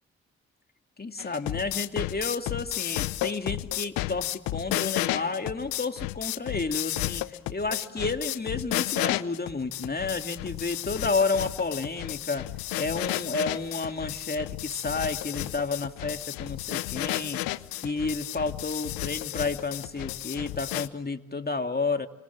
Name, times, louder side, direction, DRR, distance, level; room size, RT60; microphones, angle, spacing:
voice 1, 1.0-12.5 12.7-22.1, left 3 dB, 25° left, 6 dB, 2.6 m, -31 dB
sound 1, 1.2-20.9, left 18 dB, 80° left, 0.9 m, -32 dB
30.0 x 26.0 x 7.5 m, 1.0 s
hypercardioid pair, 45°, 34 cm